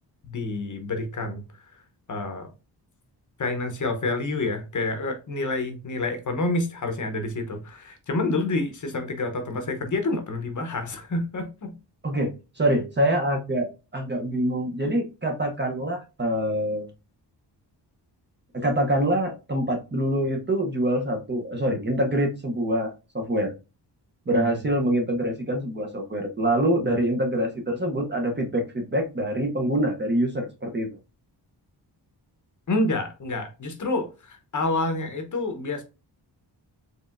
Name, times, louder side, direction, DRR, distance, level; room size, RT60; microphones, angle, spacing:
voice 1, 0.2-1.4 2.1-2.5 3.4-11.7 24.3-24.5 26.8-27.0 32.7-35.8, left 2 dB, 45° left, 0.8 m, -28 dB
voice 2, 12.0-16.9 18.5-23.5 24.3-30.9, right 1 dB, 25° right, 0.7 m, -25 dB
4.4 x 3.2 x 2.4 m
wide cardioid pair, 160°, 43 cm